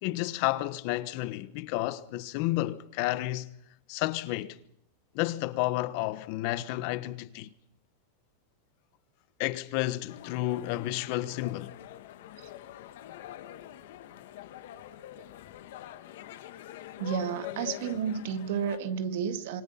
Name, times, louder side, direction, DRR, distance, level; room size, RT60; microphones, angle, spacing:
voice 1, 0.0-3.5 3.9-4.6 5.1-7.5 9.4-11.8, left 17 dB, 45° left, 1.1 m, -31 dB
sound 1, 10.1-18.8, left 11 dB, 70° left, 1.9 m, -44 dB
voice 2, 17.0-19.6, right 7 dB, 65° right, 2.1 m, -31 dB
26.0 x 24.5 x 5.8 m
supercardioid pair, 160°, 0 cm